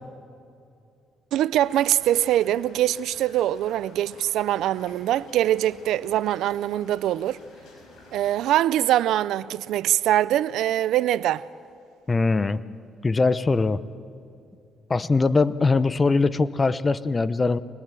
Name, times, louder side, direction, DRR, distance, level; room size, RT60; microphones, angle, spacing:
voice 1, 1.3-7.4 8.1-11.4, right 12 dB, 85° right, 0.5 m, -23 dB
sound 1, 1.6-8.3, left 3 dB, 70° left, 6.1 m, -51 dB
voice 2, 12.1-12.6 13.0-13.8 14.9-17.6, left 3 dB, 30° left, 0.8 m, -21 dB
26.0 x 20.5 x 7.5 m
cardioid pair, 90°, 0 cm